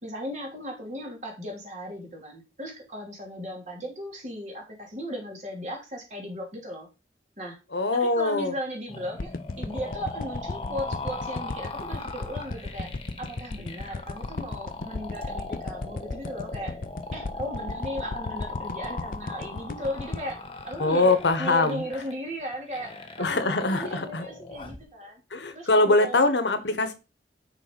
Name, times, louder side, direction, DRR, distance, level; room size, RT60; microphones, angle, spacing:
voice 1, 0.0-6.9 7.4-7.6 7.9-16.8 17.1-20.4 20.6-25.2 25.5-26.3 26.7-26.8, equal, 40° right, 0 dB, 2.9 m, -36 dB
voice 2, 7.7-8.5 20.8-21.8 23.2-24.3 25.3-26.9, left 2 dB, 85° left, 9 dB, 1.2 m, -23 dB
sound 1, 8.9-24.8, left 2 dB, 30° left, 1.3 m, -39 dB
sound 2, 9.2-21.5 21.9-22.0, left 3 dB, 50° left, 0.6 m, -35 dB
6.4 x 5.3 x 5.2 m, 0.28 s
head